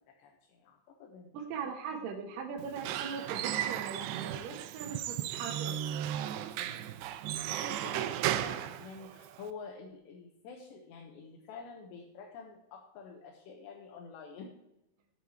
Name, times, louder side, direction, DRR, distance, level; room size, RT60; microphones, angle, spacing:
voice 1, 0.2-1.4 6.6-6.9 7.5-14.5, left 5 dB, 80° left, 0 dB, 3.6 m, -48 dB
voice 2, 1.3-5.8, right 5 dB, 65° right, 2 dB, 2.6 m, -40 dB
Squeak / Wood, 2.6-9.5, right 12 dB, 90° right, 2.9 m, -35 dB
15.0 x 8.2 x 4.5 m, 0.88 s
omnidirectional pair, 4.9 m